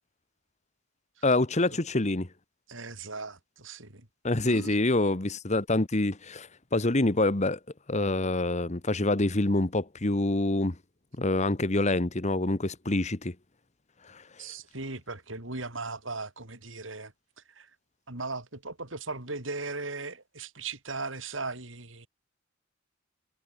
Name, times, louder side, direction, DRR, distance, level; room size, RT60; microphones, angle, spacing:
voice 1, 1.2-2.3 4.2-7.6 7.9-10.7 11.2-13.3 14.1-14.2, left 2 dB, 35° left, 1.4 m, -26 dB
voice 2, 2.7-4.1 4.4-4.8 14.4-17.1 17.6-17.7 18.1-22.1, right 3 dB, 75° right, 5.3 m, -38 dB
head